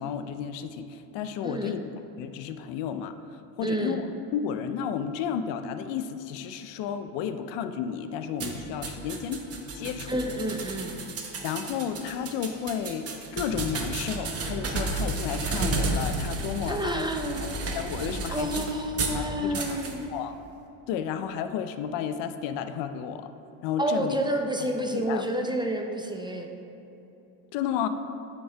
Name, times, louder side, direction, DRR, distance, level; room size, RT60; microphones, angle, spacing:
voice 1, 0.0-1.8 2.2-3.2 3.6-9.4 9.7-10.2 11.4-18.7 19.1-19.8 20.1-20.3 20.9-23.3 23.6-24.2 24.9-25.2 27.5-27.9, left 8 dB, 75° left, 9 dB, 0.6 m, -32 dB
voice 2, 1.4-1.8 3.6-4.0 10.1-10.9 16.7-17.6 18.3-20.0 23.8-26.5, right 1 dB, 10° right, 3 dB, 0.5 m, -29 dB
sound 1, 8.4-19.2 19.5-19.9, right 3 dB, 35° right, 1.0 m, -32 dB
9.3 x 5.4 x 3.4 m, 3.0 s
cardioid pair, 100°, 43 cm